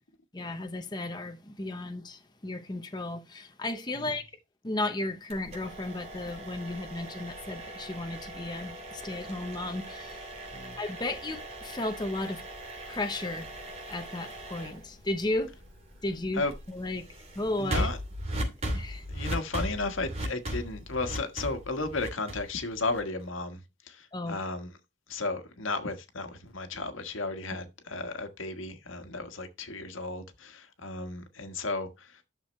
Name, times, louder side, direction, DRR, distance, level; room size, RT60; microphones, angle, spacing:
voice 1, 0.3-4.3 4.6-10.3 10.8-12.4 12.9-13.5 13.9-15.5 16.0-16.4 16.7-17.0 17.3-17.9 18.7-19.0 24.1-24.4, left 2 dB, 20° left, 0.8 m, -34 dB
sound 1, 5.3-23.2, equal, 30° right, 2.8 m, -38 dB
voice 2, 17.6-18.0 19.1-24.7 25.1-32.3, left 3 dB, 85° left, 1.5 m, -34 dB
11.0 x 6.5 x 3.2 m
head